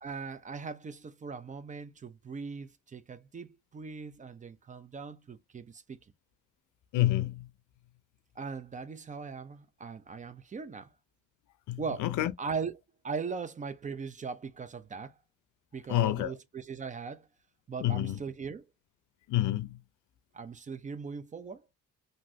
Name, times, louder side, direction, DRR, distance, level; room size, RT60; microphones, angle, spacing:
voice 1, 0.0-6.0 8.4-10.9 11.8-12.1 12.4-15.1 15.7-17.3 17.7-18.7 20.3-21.6, right 5 dB, 25° right, 0.4 m, -39 dB
voice 2, 6.9-7.5 11.7-12.3 15.9-16.3 17.8-18.2 19.3-19.8, left 14 dB, 80° left, 0.5 m, -28 dB
2.9 x 2.6 x 2.6 m
cardioid pair, 90°, 30 cm